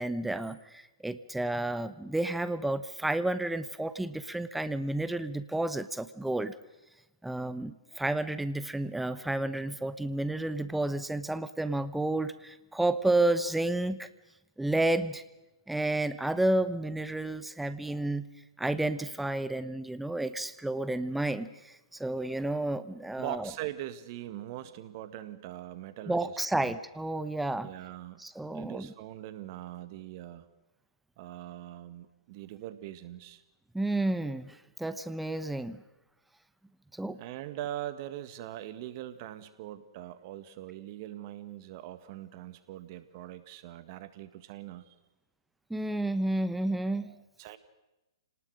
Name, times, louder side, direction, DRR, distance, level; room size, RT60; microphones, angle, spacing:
voice 1, 0.0-6.5 7.2-14.1 14.6-15.2 15.7-18.3 18.6-23.5 26.1-27.7 28.2-28.9 33.7-35.8 36.9-37.2 45.7-47.1, right 2 dB, 5° right, 13 dB, 0.9 m, -31 dB
voice 2, 23.2-26.8 27.6-30.5 31.2-33.4 37.2-45.0 47.0-47.6, right 13 dB, 45° right, 12 dB, 1.7 m, -42 dB
28.0 x 19.0 x 6.4 m, 1.0 s
hypercardioid pair, 120°, 3 cm